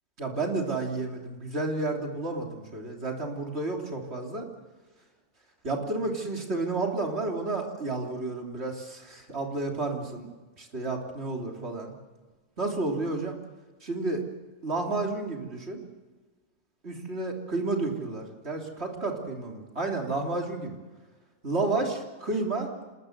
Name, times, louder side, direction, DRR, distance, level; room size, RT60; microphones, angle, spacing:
voice 1, 0.2-4.5 5.6-10.3 10.6-12.0 12.6-13.3 13.8-14.2 14.6-15.8 16.8-20.8 21.4-22.7, right 3 dB, 60° right, 1 dB, 3.4 m, -31 dB
27.0 x 20.5 x 6.6 m, 1.3 s
omnidirectional pair, 1.3 m